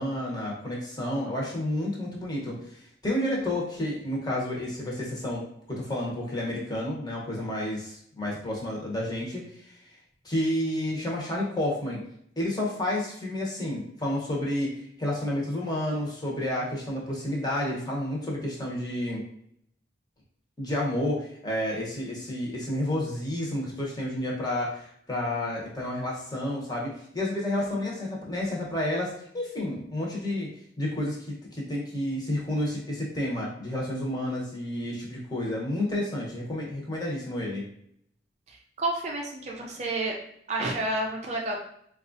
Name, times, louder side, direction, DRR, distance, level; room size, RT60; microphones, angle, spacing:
voice 1, 0.0-9.9 10.2-12.0 12.4-14.7 15.0-19.2 20.6-30.5 30.8-37.6, left 1 dB, 20° left, -4 dB, 0.9 m, -30 dB
voice 2, 38.5-40.2 40.5-41.6, right 2 dB, 35° right, 0 dB, 0.4 m, -30 dB
4.1 x 2.4 x 2.6 m, 0.69 s
head